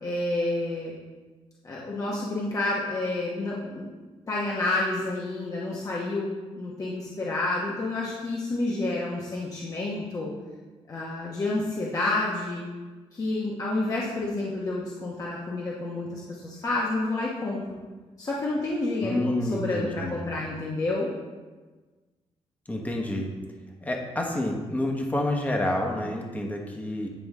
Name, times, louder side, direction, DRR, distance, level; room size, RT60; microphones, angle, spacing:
voice 1, 0.0-0.9 1.6-3.9 4.3-6.3 6.6-10.3 10.9-12.6 13.1-17.8 18.2-21.1, left 2 dB, 35° left, -5 dB, 1.0 m, -29 dB
voice 2, 19.0-20.2 22.7-23.3 23.8-27.1, left 1 dB, 15° left, 1 dB, 1.1 m, -28 dB
9.2 x 5.1 x 3.6 m, 1.3 s
wide cardioid pair, 145°, 11 cm